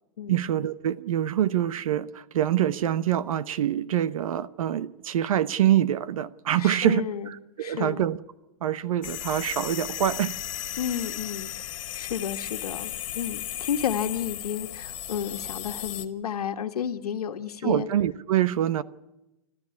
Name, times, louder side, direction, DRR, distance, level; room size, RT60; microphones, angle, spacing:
voice 1, 0.3-8.2 8.6-10.4 17.6-18.8, right 11 dB, 65° right, 1.0 m, -25 dB
voice 2, 6.6-7.3 7.6-8.0 10.8-17.9, left 8 dB, 90° left, 1.6 m, -32 dB
sound 1, 9.0-16.1, left 12 dB, 55° left, 2.0 m, -35 dB
27.5 x 13.5 x 9.7 m
hypercardioid pair, 155°, 19 cm